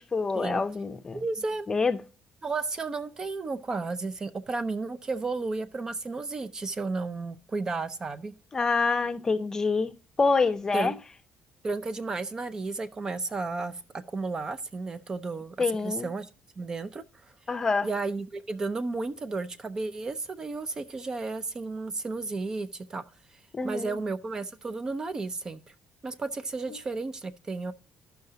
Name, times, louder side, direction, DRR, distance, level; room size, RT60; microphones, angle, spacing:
voice 1, 0.0-1.2 1.7-2.0 8.5-9.9 10.2-10.9 15.6-16.1 17.5-17.9 23.5-24.0, left 4 dB, 25° left, 0.6 m, -26 dB
voice 2, 1.1-1.7 2.4-8.3 10.7-11.0 11.6-15.6 15.8-16.3 16.6-17.0 17.8-23.0 23.6-25.6 26.0-27.7, right 3 dB, 30° right, 0.5 m, -33 dB
14.5 x 5.6 x 2.7 m
cardioid pair, 120°, 2 cm